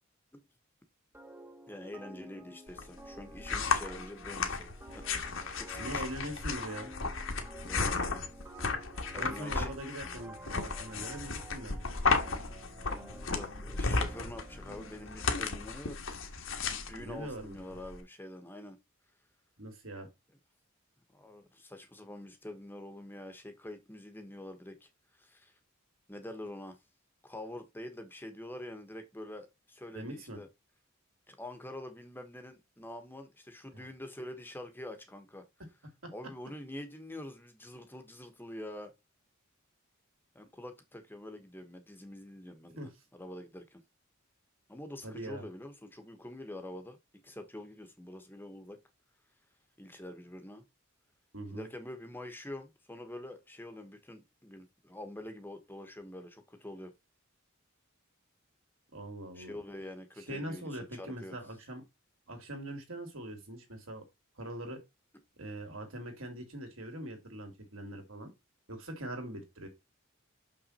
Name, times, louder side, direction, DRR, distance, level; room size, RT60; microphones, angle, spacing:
sound 1, 1.1-15.8, right 2 dB, 10° right, 0.9 m, -52 dB
voice 1, 1.7-6.0 7.6-8.3 9.1-9.7 13.3-16.2 16.6-18.8 21.1-25.5 26.1-26.8 27.2-30.5 31.3-35.4 36.1-38.9 40.3-43.8 44.7-47.0 47.2-48.8 49.8-50.6 51.5-56.9 59.3-61.4, left 1 dB, 10° left, 1.1 m, -46 dB
sound 2, 2.7-18.0, left 4 dB, 65° left, 1.4 m, -34 dB
voice 2, 5.8-6.9 9.2-11.9 17.1-17.6 19.6-20.1 29.9-30.4 33.7-33.9 42.8-42.9 45.0-45.5 51.3-51.7 58.9-59.6 60.3-61.8 62.3-64.0 64.4-64.8 65.4-68.3 68.7-69.7, right 1 dB, 70° right, 2.7 m, -42 dB
6.5 x 6.0 x 4.2 m
head